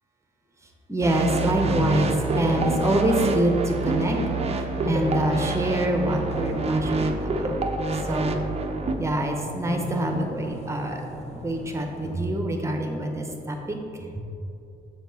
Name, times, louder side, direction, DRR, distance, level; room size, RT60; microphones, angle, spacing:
voice 1, 0.9-4.2 4.5-7.6 8.0-8.5 9.0-11.0 11.3-14.1, right 1 dB, 15° right, 2 dB, 0.9 m, -26 dB
sound 1, 1.0-9.0, right 3 dB, 30° right, 0.6 m, -27 dB
sound 2, 1.3-12.2, equal, 35° left, 0.8 m, -35 dB
7.2 x 4.5 x 4.1 m, 2.7 s
cardioid pair, 90°, 20 cm